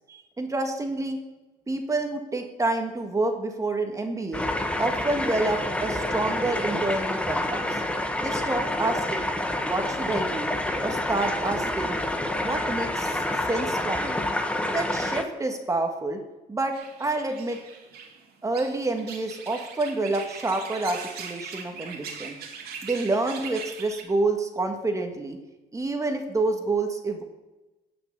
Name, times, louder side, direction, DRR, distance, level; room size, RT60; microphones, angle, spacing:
voice 1, 0.1-1.2 1.7-4.4 4.8-7.8 8.2-9.3 9.6-10.5 10.8-12.0 12.4-13.2 13.5-14.2 14.6-16.2 16.5-17.6 18.4-22.3 22.8-25.4 25.7-27.2, right 2 dB, 20° right, 4 dB, 1.7 m, -28 dB
sound 1, 4.3-15.2, left 1 dB, 5° left, 1.1 m, -28 dB
sound 2, 16.7-24.0, right 6 dB, 70° right, 2.4 m, -40 dB
16.5 x 6.1 x 6.8 m, 1.1 s
cardioid pair, 110°, 17 cm